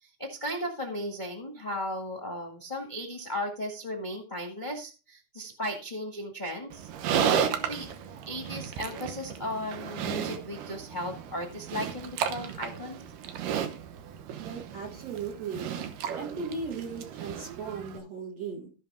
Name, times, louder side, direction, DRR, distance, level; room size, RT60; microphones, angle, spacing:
voice 1, 0.0-7.9 8.3-13.0, left 1 dB, 25° left, 0 dB, 1.1 m, -36 dB
Livestock farm animals working animals, 6.7-18.0, right 8 dB, 70° right, 2.6 m, -34 dB
voice 2, 14.4-15.7 16.1-18.7, right 5 dB, 50° right, 0 dB, 2.6 m, -37 dB
16.0 x 5.7 x 3.6 m, 0.33 s
omnidirectional pair, 4.2 m